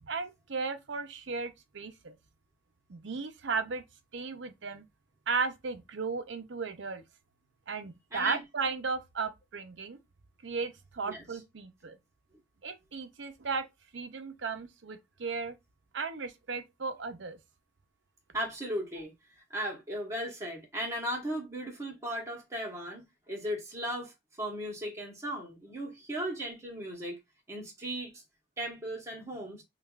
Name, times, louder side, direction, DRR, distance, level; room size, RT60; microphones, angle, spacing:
voice 1, 0.0-2.2 2.9-3.8 4.1-4.8 5.3-7.0 7.7-10.0 10.4-12.0 12.6-13.7 13.9-15.6 15.9-17.4, right 4 dB, 75° right, 0.7 m, -35 dB
voice 2, 8.1-8.4 11.0-11.2 18.3-19.1 19.5-24.1 24.4-27.2 27.5-28.2 28.6-29.6, equal, 15° right, 1.2 m, -36 dB
5.5 x 2.4 x 2.4 m
head